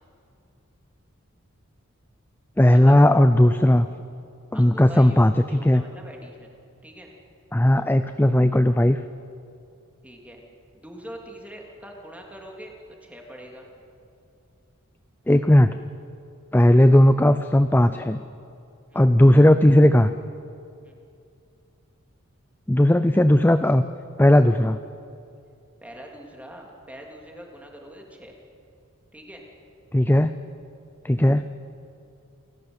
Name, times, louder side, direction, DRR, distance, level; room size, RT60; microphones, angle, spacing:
voice 1, 2.6-3.9 4.5-5.8 7.5-9.0 15.3-15.7 16.5-18.2 18.9-20.1 22.7-23.8 24.2-24.8 29.9-30.3 31.0-31.4, left 1 dB, 10° left, 10 dB, 0.5 m, -16 dB
voice 2, 4.5-6.5 6.8-7.1 10.0-10.4 10.7-12.7 13.0-13.7 18.9-19.0 20.8-21.0 25.8-28.3 29.1-29.4, equal, 5° right, 0 dB, 3.3 m, -43 dB
28.5 x 17.5 x 8.1 m, 2.6 s
head